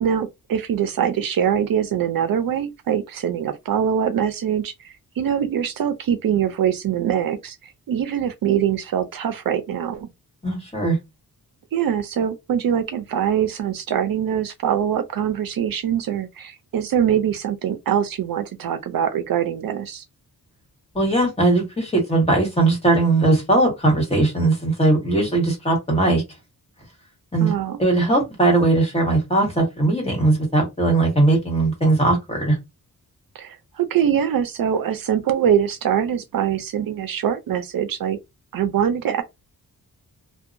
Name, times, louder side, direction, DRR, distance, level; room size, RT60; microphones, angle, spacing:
voice 1, 0.0-10.1 11.7-20.0 27.4-27.8 33.4-38.2 38.5-39.2, right 9 dB, 65° right, 0.5 m, -23 dB
voice 2, 10.4-11.0 20.9-26.2 27.3-27.5 27.8-32.6, right 2 dB, 15° left, 1.3 m, -19 dB
2.8 x 2.2 x 2.5 m
wide cardioid pair, 135°, 37 cm